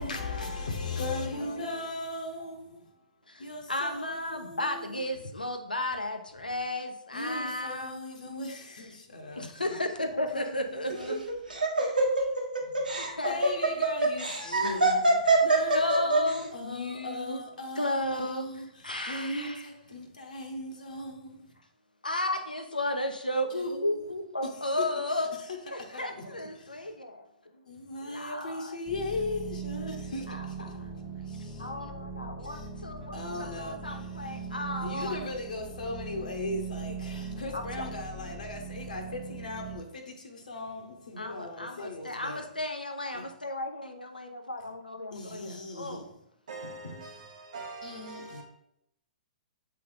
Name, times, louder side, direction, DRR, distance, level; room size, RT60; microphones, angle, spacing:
voice 1, 0.0-2.8 3.4-4.9 7.1-9.6 10.3-10.6 10.9-11.2 13.2-14.9 15.4-18.7 19.1-21.5 23.5-24.0 25.7-26.0 26.4-26.7 27.7-30.8 31.2-31.7 32.4-32.6 33.1-33.9 34.8-42.4 43.1-43.2 45.1-46.1 46.6-47.0 47.8-48.4, left 2 dB, 70° left, 1.1 m, -38 dB
voice 2, 3.3-8.9 9.4-11.2 13.0-13.5 14.3-15.4 15.7-17.4 17.8-18.5 18.8-19.7 22.0-25.3 25.7-27.2 28.0-28.8 30.3-30.9 31.6-35.2 37.5-37.8 41.2-46.0, left 1 dB, 90° left, 0.8 m, -34 dB
Laughter, 10.9-16.4, right 2 dB, 85° right, 1.3 m, -24 dB
sound 1, 28.9-39.8, right 4 dB, 15° left, 1.4 m, -40 dB
voice 3, 46.5-48.4, right 3 dB, 65° right, 0.9 m, -43 dB
7.5 x 3.5 x 3.9 m
figure-of-eight pair, 115°, 5 cm